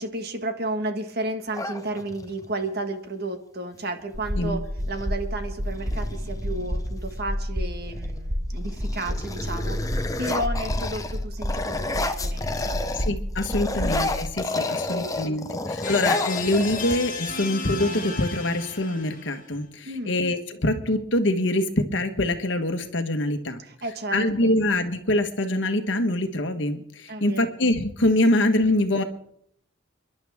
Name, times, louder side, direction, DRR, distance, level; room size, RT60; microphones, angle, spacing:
voice 1, 0.0-12.8 13.5-13.8 14.6-15.4 19.8-20.2 23.6-24.6 27.1-27.5, right 2 dB, 50° right, 6 dB, 1.6 m, -33 dB
sound 1, 1.5-2.5 4.2-4.3 4.6-5.1 5.7-7.2 7.8-8.2 8.6-13.1 13.4-17.3, left 2 dB, 15° left, 0.7 m, -31 dB
sound 2, 4.1-14.3, equal, 15° right, 1.2 m, -30 dB
voice 2, 13.0-23.6 24.1-29.0, left 1 dB, 65° left, 7 dB, 1.4 m, -24 dB
sound 3, 15.8-19.5, left 4 dB, 40° left, 1.5 m, -34 dB
29.0 x 11.0 x 3.6 m, 0.74 s
head